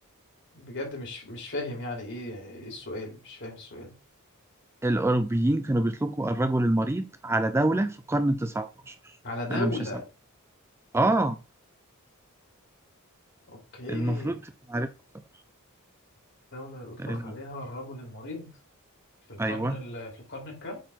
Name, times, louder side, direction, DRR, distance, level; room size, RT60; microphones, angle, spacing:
voice 1, 0.5-3.9 9.2-10.0 13.5-14.4 16.5-18.5 19.3-20.8, left 2 dB, 55° left, 3.1 m, -37 dB
voice 2, 4.8-9.2 9.5-9.7 10.9-11.4 13.9-14.4 14.7-14.9 17.0-17.3 19.4-19.8, right 1 dB, 10° right, 0.4 m, -26 dB
8.5 x 3.8 x 4.4 m
head